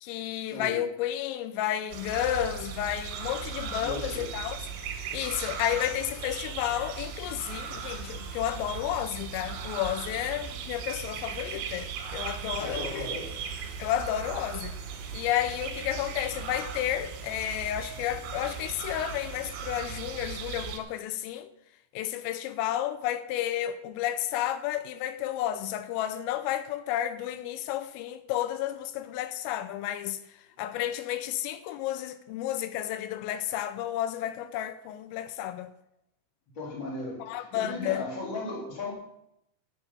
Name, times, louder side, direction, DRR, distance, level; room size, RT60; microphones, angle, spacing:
voice 1, 0.0-4.6 5.1-13.1 13.8-14.8 15.1-21.5 21.9-30.2 30.6-35.7 37.2-38.0, left 12 dB, 85° left, 3.3 m, -31 dB
sound 1, 1.9-20.8, right 6 dB, 75° right, 3.8 m, -38 dB
voice 2, 3.8-4.3 12.6-13.4 36.5-38.9, left 2 dB, 25° left, 3.4 m, -36 dB
12.5 x 8.2 x 5.5 m
omnidirectional pair, 5.8 m